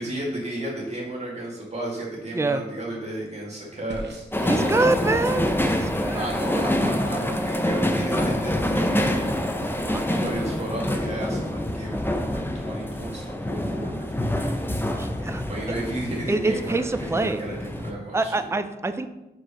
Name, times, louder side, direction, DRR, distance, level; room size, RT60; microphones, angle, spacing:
voice 1, 0.0-5.2 6.1-9.1 10.1-14.6 15.5-18.5, right 1 dB, 35° right, -5 dB, 2.2 m, -34 dB
sound 1, 3.9-10.6, right 1 dB, 70° right, 0.9 m, -45 dB
sound 2, 4.3-17.9, left 1 dB, 10° left, 0.8 m, -26 dB
voice 2, 4.4-5.5 5.8-6.3 9.8-10.2 15.0-15.4 16.3-17.4 18.1-19.1, right 2 dB, 15° right, 10 dB, 0.5 m, -25 dB
5.0 x 4.6 x 5.0 m, 0.97 s
cardioid pair, 50°, 18 cm